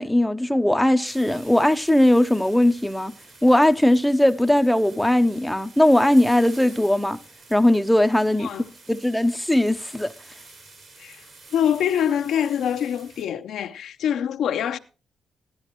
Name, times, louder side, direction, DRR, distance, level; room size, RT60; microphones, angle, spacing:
voice 1, 0.0-3.1 3.4-7.2 7.5-8.5 8.9-10.1, left 1 dB, 5° left, 0.6 m, -19 dB
sound 1, 1.0-13.2, right 3 dB, 65° right, 5.1 m, -48 dB
voice 2, 11.5-14.8, left 9 dB, 85° left, 0.6 m, -24 dB
15.0 x 11.5 x 2.9 m
cardioid pair, 75°, 0 cm